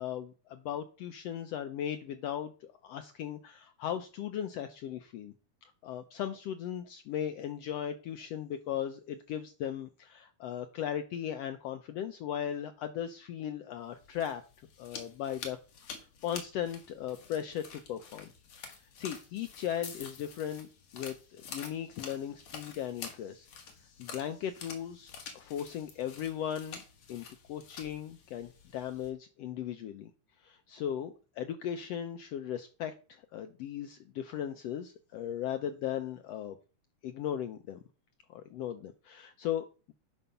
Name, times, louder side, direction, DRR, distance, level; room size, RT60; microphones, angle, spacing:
voice 1, 0.0-5.3 5.6-14.4 14.8-15.6 15.9-18.3 19.0-20.7 20.9-23.5 24.0-26.8 27.1-30.1 30.4-36.6 37.0-37.8 38.3-39.9, left 10 dB, 75° left, 8 dB, 1.5 m, -37 dB
sound 1, 13.9-29.1, left 6 dB, 60° left, 2.8 m, -48 dB
11.0 x 5.2 x 5.7 m, 0.36 s
omnidirectional pair, 3.5 m